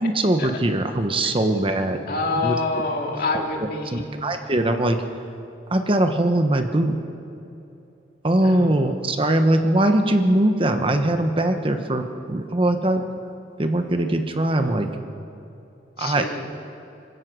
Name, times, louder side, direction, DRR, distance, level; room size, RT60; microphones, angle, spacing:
voice 1, 0.0-2.0 2.4-2.9 3.3-5.0 5.7-6.9 8.2-13.0 13.6-14.9 16.0-16.3, right 1 dB, 30° right, 6 dB, 1.1 m, -21 dB
voice 2, 2.1-4.1 8.4-8.7 16.0-16.4, left 3 dB, 55° left, 1 dB, 2.5 m, -26 dB
26.0 x 16.0 x 6.2 m, 2.9 s
head